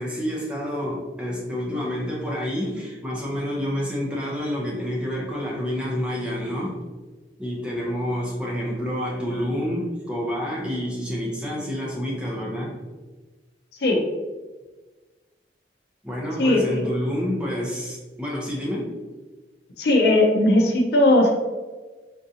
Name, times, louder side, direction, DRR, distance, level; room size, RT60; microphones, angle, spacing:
voice 1, 0.0-6.8 7.4-12.8 16.0-18.9, equal, 5° right, -4 dB, 0.6 m, -28 dB
voice 2, 16.4-16.8 19.8-21.3, left 1 dB, 70° left, 2 dB, 0.5 m, -18 dB
3.7 x 2.6 x 2.7 m, 1.3 s
head